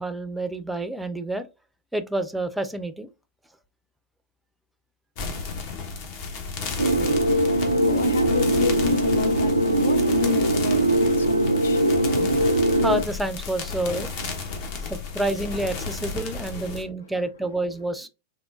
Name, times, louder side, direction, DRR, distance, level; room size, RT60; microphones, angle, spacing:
voice 1, 0.0-1.5 1.9-3.1 12.1-12.5 12.8-14.1 14.9-18.1, right 1 dB, 5° right, 0.4 m, -28 dB
sound 1, 5.2-16.8, left 4 dB, 50° left, 1.0 m, -33 dB
sound 2, 6.8-13.0, right 1 dB, 85° right, 0.3 m, -21 dB
voice 2, 7.2-13.9 14.5-15.7 16.3-16.5 17.0-17.6, left 5 dB, 65° left, 0.5 m, -34 dB
3.5 x 3.2 x 2.4 m
figure-of-eight pair, 90°, 0 cm